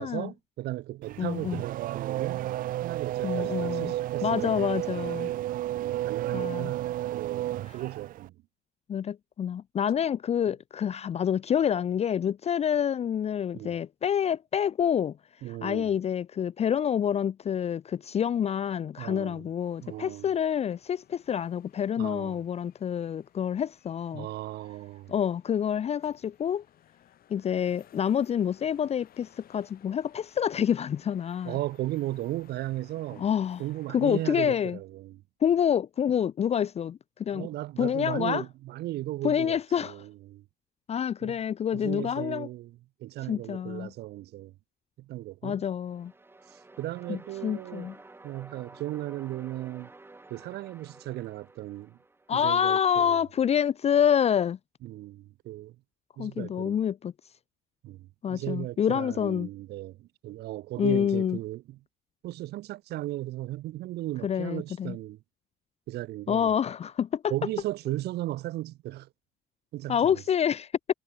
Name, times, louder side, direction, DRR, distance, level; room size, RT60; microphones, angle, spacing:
voice 1, 0.0-2.5 2.8-4.7 5.7-8.4 13.5-13.8 15.4-15.9 19.0-19.5 19.8-20.3 22.0-22.4 24.1-25.1 31.4-33.2 33.6-35.2 37.3-40.4 41.2-41.4 41.7-44.5 45.0-45.6 46.5-47.9 48.2-49.9 50.3-52.0 52.3-53.2 54.8-55.8 56.2-56.8 57.8-61.8 62.2-65.2 65.9-66.5 67.3-69.1 69.7-70.2, right 16 dB, 75° right, 1.5 m, -36 dB
Race car auto racing / Accelerating revving vroom, 1.0-8.3, right 14 dB, 55° right, 0.4 m, -32 dB
voice 2, 1.2-1.6 3.2-3.9 4.2-5.3 6.3-6.7 8.9-15.2 15.6-24.3 25.1-26.6 27.3-31.6 33.2-33.6 33.9-34.8 35.4-37.5 37.8-38.4 39.2-40.0 40.9-42.5 43.3-43.9 45.4-46.1 47.1-47.9 52.3-54.6 56.2-57.1 58.2-59.5 60.8-61.4 64.2-65.0 66.3-67.3 69.9-70.7, left 8 dB, 40° left, 0.6 m, -27 dB
sound 1, 19.6-34.5, left 11 dB, 60° left, 4.1 m, -59 dB
sound 2, 45.8-52.8, right 2 dB, 15° right, 2.3 m, -52 dB
cardioid pair, 110°, 17 cm